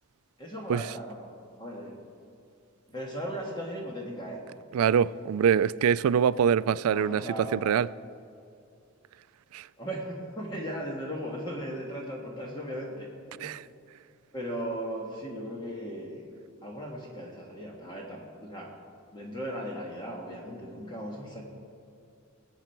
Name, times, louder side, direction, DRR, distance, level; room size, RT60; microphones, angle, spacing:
voice 1, 0.4-1.3 1.6-2.0 2.9-4.4 6.8-7.6 9.8-13.1 13.3-13.5 14.3-16.3 16.6-18.7 19.1-21.4, equal, 20° left, 1.5 m, -37 dB
voice 2, 4.7-7.2 7.5-7.9 9.5-9.7 13.4-13.6, right 7 dB, 90° right, 0.3 m, -24 dB
20.5 x 8.4 x 4.5 m
head